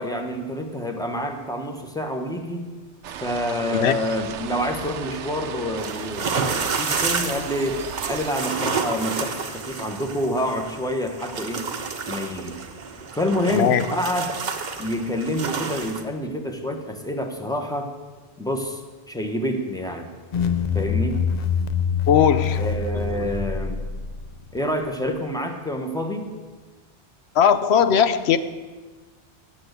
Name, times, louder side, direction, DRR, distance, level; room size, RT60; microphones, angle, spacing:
voice 1, 0.0-2.7 3.2-7.8 8.1-11.7 12.1-12.6 13.1-14.4 14.8-17.9 18.4-18.8 19.1-20.1 20.7-21.2 22.6-23.8 24.5-26.3, left 1 dB, 5° left, 4 dB, 1.0 m, -27 dB
sound 1, 3.0-8.3, right 8 dB, 85° right, 1.0 m, -35 dB
sound 2, 5.8-16.0, right 5 dB, 45° right, 0.9 m, -30 dB
voice 2, 13.5-13.9 22.1-22.6 23.2-23.3 27.4-28.4, left 8 dB, 70° left, 12 dB, 0.9 m, -18 dB
sound 3, 20.3-24.6, left 6 dB, 50° left, 0.5 m, -25 dB
8.7 x 7.3 x 8.0 m, 1.3 s
omnidirectional pair, 1.2 m